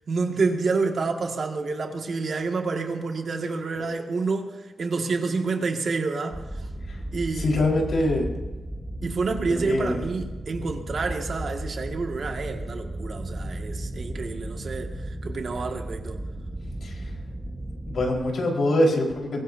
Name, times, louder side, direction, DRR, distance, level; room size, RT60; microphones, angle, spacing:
voice 1, 0.1-6.6 7.1-7.5 9.0-16.2, right 4 dB, 55° right, 1.9 m, -28 dB
sound 1, 6.3-18.2, right 1 dB, 10° right, 1.3 m, -35 dB
voice 2, 7.4-8.3 9.5-10.0 16.8-17.1 17.9-19.4, left 1 dB, 65° left, 4.5 m, -24 dB
22.5 x 19.0 x 2.7 m
wide cardioid pair, 125°, 0 cm